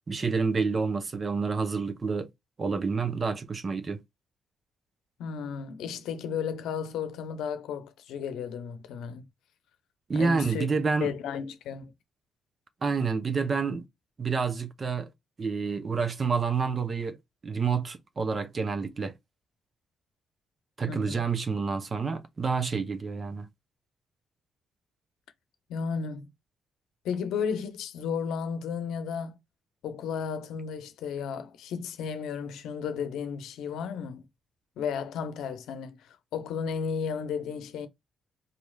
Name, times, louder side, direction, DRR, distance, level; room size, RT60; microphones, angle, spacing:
voice 1, 0.1-2.3 2.6-4.0 10.1-11.1 12.8-13.8 14.2-15.1 15.4-17.2 17.4-19.1 20.8-23.5, right 5 dB, 35° right, 0.7 m, -28 dB
voice 2, 5.2-9.2 10.1-10.7 11.0-11.9 20.9-21.2 25.7-26.3 27.0-29.3 29.8-34.3 34.8-37.9, left 6 dB, 85° left, 0.7 m, -33 dB
4.1 x 3.1 x 2.2 m
cardioid pair, 90°, 0 cm